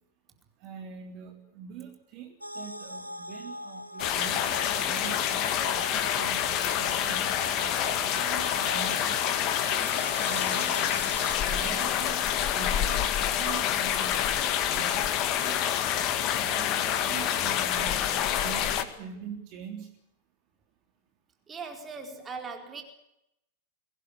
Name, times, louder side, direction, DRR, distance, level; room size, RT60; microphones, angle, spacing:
voice 1, 0.6-7.3 7.6-9.4 9.8-10.9 11.5-12.3 12.5-14.4 14.7-15.6 16.4-19.9, right 6 dB, 40° right, 3 dB, 3.6 m, -43 dB
sound 1, 2.4-11.3, left 1 dB, 85° right, 1.1 m, -40 dB
sound 2, 4.0-18.8, left 10 dB, 40° left, 2.0 m, -27 dB
voice 2, 21.5-22.8, right 4 dB, 20° right, 4 dB, 4.4 m, -39 dB
23.0 x 19.0 x 8.3 m, 0.84 s
figure-of-eight pair, 90°, 0 cm